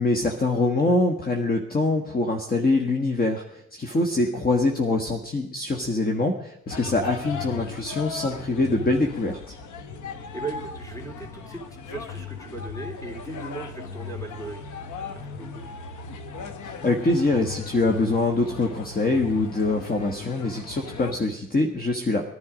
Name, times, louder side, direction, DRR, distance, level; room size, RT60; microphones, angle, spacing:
voice 1, 0.0-3.4 3.7-9.5 16.6-22.2, left 2 dB, 30° left, 3 dB, 1.5 m, -24 dB
sound 1, 6.7-21.1, left 5 dB, 75° left, 1.3 m, -37 dB
voice 2, 10.3-14.6 15.1-15.7, right 3 dB, 10° left, 2 dB, 3.4 m, -38 dB
19.0 x 11.0 x 5.1 m, 0.77 s
cardioid pair, 90°, 30 cm